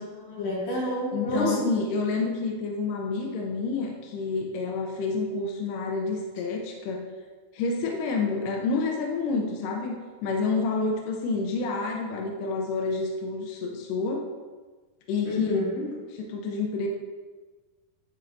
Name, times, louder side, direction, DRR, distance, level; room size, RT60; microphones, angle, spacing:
voice 1, 0.0-1.6 15.3-15.8, left 1 dB, 55° left, -8 dB, 3.4 m, -29 dB
voice 2, 1.1-7.1 7.5-14.3 15.1-15.5 16.1-16.9, left 4 dB, 85° left, 1 dB, 1.9 m, -29 dB
10.5 x 4.3 x 2.6 m, 1.3 s
omnidirectional pair, 4.6 m